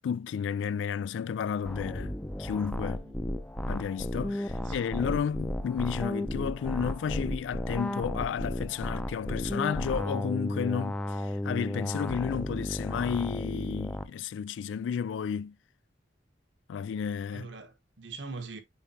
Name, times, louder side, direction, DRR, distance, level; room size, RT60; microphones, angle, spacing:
voice 1, 0.0-3.0 3.7-15.6 16.7-17.5, left 7 dB, 85° left, 0.3 m, -32 dB
sound 1, 1.6-14.0, left 1 dB, 5° left, 0.5 m, -34 dB
voice 2, 4.5-4.9 17.3-18.6, right 3 dB, 85° right, 1.3 m, -42 dB
8.5 x 4.4 x 2.8 m
head